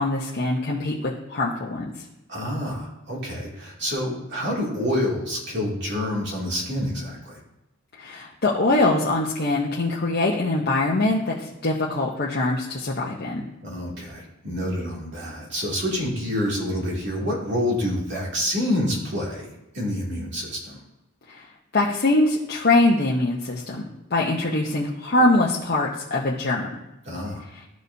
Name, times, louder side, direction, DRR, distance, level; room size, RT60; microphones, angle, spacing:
voice 1, 0.0-1.9 8.0-13.5 21.3-21.4 21.7-26.7, left 2 dB, 50° left, -4 dB, 0.8 m, -23 dB
voice 2, 2.3-7.4 13.6-20.8 27.0-27.4, left 1 dB, 60° right, -4 dB, 2.6 m, -27 dB
12.5 x 4.8 x 2.7 m, 0.97 s
head